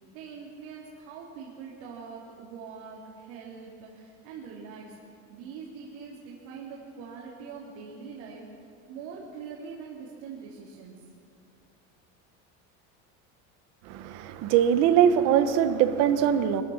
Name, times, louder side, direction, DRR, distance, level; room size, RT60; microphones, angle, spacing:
voice 1, 0.0-5.0 5.3-8.5 8.9-11.0, right 5 dB, 70° right, -5 dB, 3.6 m, -43 dB
voice 2, 13.9-16.6, right 9 dB, 50° right, 10 dB, 1.3 m, -22 dB
24.5 x 15.5 x 7.4 m, 2.4 s
cardioid pair, 175°, 32 cm